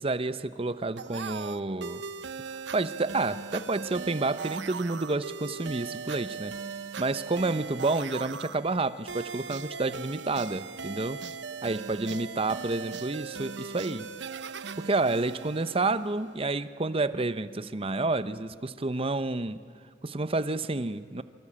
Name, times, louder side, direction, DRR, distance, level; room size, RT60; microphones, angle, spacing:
voice 1, 0.0-2.0 2.5-6.6 7.0-11.2 11.6-14.1 14.8-19.6 20.0-21.2, right 3 dB, 30° right, 13 dB, 0.8 m, -29 dB
sound 1, 1.0-16.5, right 5 dB, 75° right, 0.9 m, -39 dB
27.5 x 24.0 x 8.7 m, 2.2 s
head